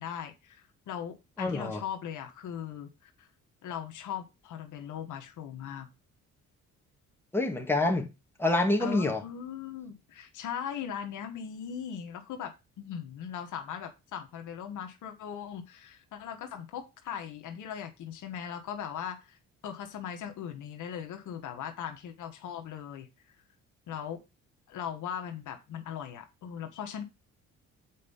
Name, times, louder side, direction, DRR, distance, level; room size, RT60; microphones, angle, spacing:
voice 1, 0.0-3.3 3.6-5.9 8.8-19.4 19.6-23.1 23.9-24.2 24.7-27.0, left 8 dB, 80° left, 1.6 m, -39 dB
voice 2, 1.4-1.8 7.3-8.1 8.4-9.2, left 2 dB, 5° left, 1.9 m, -27 dB
7.4 x 4.8 x 5.7 m
cardioid pair, 90°, 30 cm